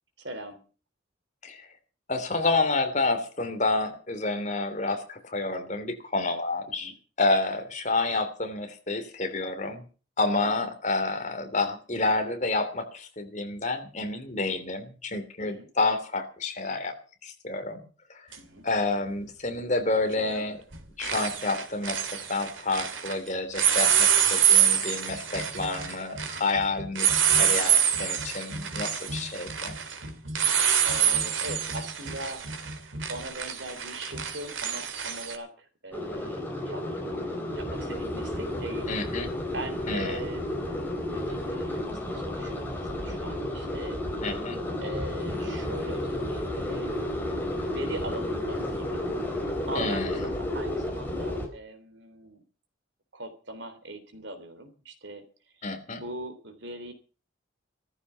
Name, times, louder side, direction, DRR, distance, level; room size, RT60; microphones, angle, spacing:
voice 1, 0.2-0.6 6.8-7.0 10.4-10.7 15.4-15.7 18.4-18.6 30.8-32.4 33.1-39.1 39.5-40.7 41.1-44.0 44.8-52.4 53.1-55.3 55.5-55.6 56.0-56.9, right 1 dB, 70° right, 9 dB, 3.4 m, -41 dB
voice 2, 2.1-6.9 7.2-9.8 10.2-16.9 17.2-17.8 18.1-18.2 18.6-20.6 21.0-22.0 22.3-29.7 38.9-39.3 39.9-40.2 44.2-44.6 49.7-50.3 55.6-56.0, left 3 dB, 40° left, 6 dB, 3.0 m, -29 dB
sound 1, 18.3-18.4 20.2-20.4 20.7-23.2 23.5-35.4, right 8 dB, 90° right, 2.7 m, -26 dB
sound 2, 35.9-51.5, left 1 dB, 10° left, 4.0 m, -32 dB
15.5 x 14.0 x 5.7 m, 0.37 s
head